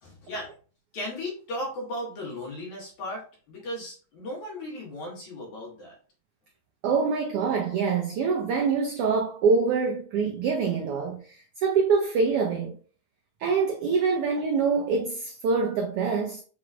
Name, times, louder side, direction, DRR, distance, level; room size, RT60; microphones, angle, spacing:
voice 1, 0.0-0.5 0.9-5.9, left 1 dB, 80° left, 3.2 m, -36 dB
voice 2, 6.8-12.8 13.4-16.4, right 5 dB, 85° right, 1.3 m, -25 dB
6.1 x 3.1 x 2.5 m
omnidirectional pair, 3.3 m